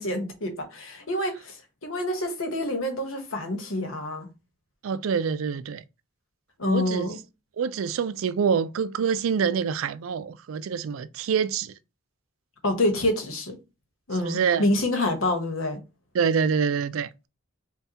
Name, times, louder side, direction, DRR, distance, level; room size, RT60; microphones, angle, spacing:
voice 1, 0.0-4.3 6.6-7.2 12.6-13.6 14.1-15.8, left 1 dB, 85° left, 1.1 m, -27 dB
voice 2, 4.8-5.8 6.6-7.1 7.6-11.7 14.2-14.7 16.1-17.1, right 6 dB, 85° right, 0.4 m, -26 dB
5.4 x 2.3 x 2.8 m
head